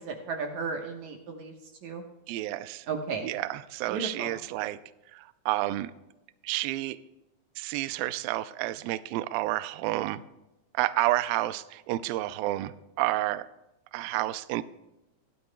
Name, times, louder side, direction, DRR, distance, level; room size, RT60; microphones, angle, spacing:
voice 1, 0.0-1.5 1.8-2.0 2.9-3.3 3.9-4.3, right 5 dB, 65° right, 2 dB, 2.1 m, -34 dB
voice 2, 2.3-2.9 3.2-4.8 5.1-5.9 6.4-7.0 7.6-10.2 10.7-13.5 13.9-14.6, right 16 dB, 85° right, 14 dB, 2.3 m, -30 dB
18.0 x 12.5 x 2.2 m, 0.95 s
omnidirectional pair, 4.3 m